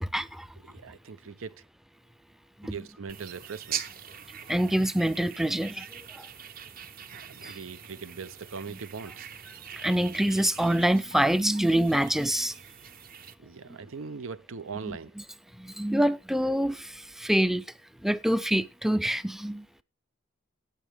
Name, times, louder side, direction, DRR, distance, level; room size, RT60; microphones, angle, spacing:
voice 1, 0.0-0.5 2.6-2.8 4.5-5.9 6.1-6.3 7.4-7.5 8.7-8.8 9.8-12.6 14.8-15.0 15.6-17.6 18.0-19.8, right 1 dB, ahead, 0.5 m, -26 dB
voice 2, 0.6-1.6 2.6-3.8 7.1-9.3 13.4-15.1, right 5 dB, 85° right, 0.7 m, -40 dB
sound 1, 3.1-13.4, right 8 dB, 45° right, 0.9 m, -43 dB
17.5 x 6.0 x 3.5 m
head